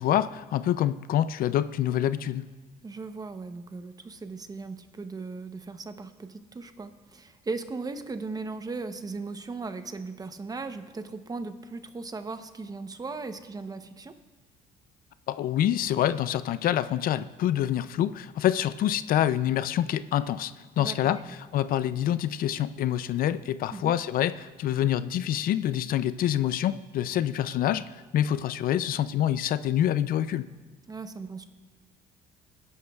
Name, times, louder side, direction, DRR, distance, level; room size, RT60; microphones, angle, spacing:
voice 1, 0.0-2.4 15.3-30.5, left 11 dB, 60° left, 14 dB, 0.4 m, -26 dB
voice 2, 2.8-14.1 20.8-21.4 23.7-23.9 30.9-31.4, right 3 dB, 20° right, 9 dB, 0.7 m, -37 dB
20.5 x 11.0 x 2.3 m, 1.3 s
cardioid pair, 110°, 17 cm